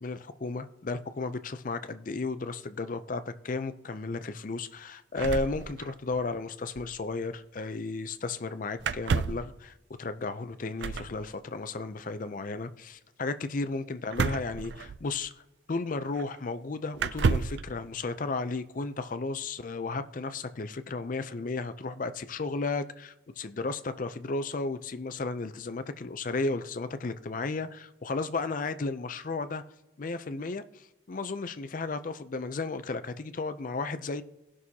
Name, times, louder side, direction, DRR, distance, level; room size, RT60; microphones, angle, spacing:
voice 1, 0.0-15.4 15.7-29.6 30.0-34.2, left 3 dB, 45° left, 0.5 m, -34 dB
sound 1, 5.2-6.2 6.5-6.6 6.8-7.0 8.8-9.5 10.8-11.2 14.1-15.3 16.1-16.2 17.0-17.7, right 5 dB, 60° right, 0.4 m, -30 dB
17.5 x 6.2 x 2.8 m
head